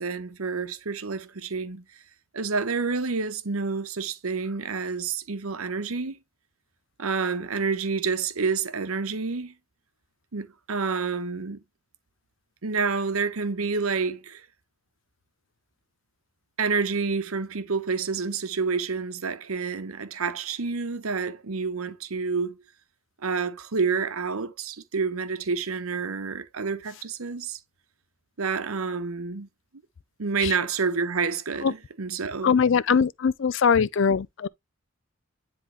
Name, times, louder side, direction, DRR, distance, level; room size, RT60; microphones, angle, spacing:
voice 1, 0.0-1.8 2.3-6.2 7.0-9.5 10.3-11.6 12.6-14.5 16.6-22.6 23.2-27.6 28.4-29.5 30.2-32.6, right 5 dB, 85° right, 0.9 m, -28 dB
voice 2, 32.4-34.5, left 6 dB, 60° left, 0.4 m, -22 dB
10.0 x 3.6 x 3.1 m
head